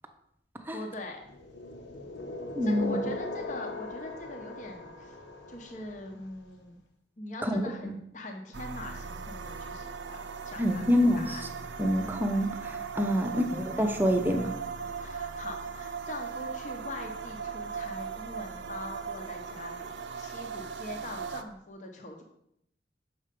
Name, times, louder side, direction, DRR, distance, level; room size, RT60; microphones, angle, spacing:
voice 1, 0.7-1.2 2.6-5.2 5.5-6.8 7.2-11.5 13.1-13.4 14.9-22.2, left 2 dB, 40° left, 2 dB, 0.8 m, -42 dB
sound 1, 1.3-6.2, left 2 dB, 75° left, 1.0 m, -39 dB
voice 2, 2.6-3.0 7.4-7.9 10.6-11.4 11.8-14.5, equal, 10° right, 5 dB, 0.6 m, -27 dB
sound 2, 8.5-21.4, right 5 dB, 70° right, 0.5 m, -38 dB
6.6 x 4.4 x 5.1 m, 0.75 s
head